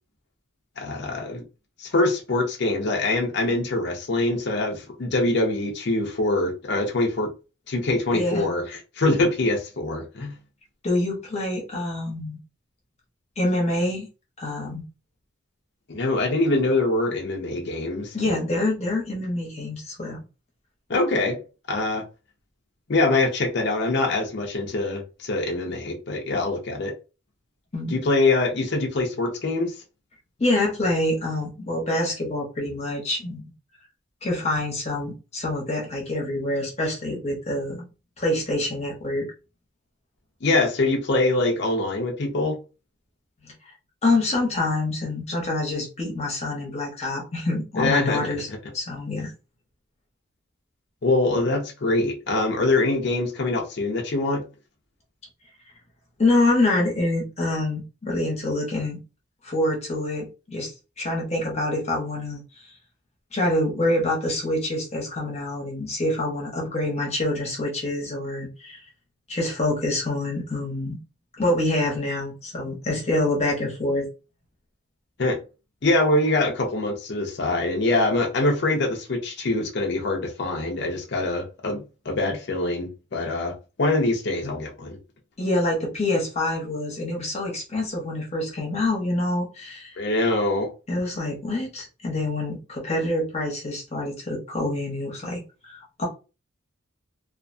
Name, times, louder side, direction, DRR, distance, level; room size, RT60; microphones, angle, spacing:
voice 1, 0.8-1.5 1.8-7.3 7.7-10.3 15.9-18.1 20.9-21.4 21.7-22.0 22.9-26.9 27.9-29.7 40.4-42.6 47.8-48.2 48.5-48.6 51.0-54.4 75.2-75.4 75.8-85.0 90.0-90.7, left 2 dB, 55° left, 0.6 m, -24 dB
voice 2, 8.1-8.4 10.8-12.4 13.4-14.1 14.4-14.8 18.1-20.2 27.7-27.9 30.4-33.4 34.2-37.8 38.2-39.3 44.0-48.5 48.7-49.3 56.2-59.0 59.4-60.7 61.0-62.7 63.3-68.8 69.3-71.0 71.4-74.1 85.4-90.0 90.9-96.1, left 2 dB, 30° left, 0.9 m, -26 dB
2.5 x 2.2 x 2.5 m
head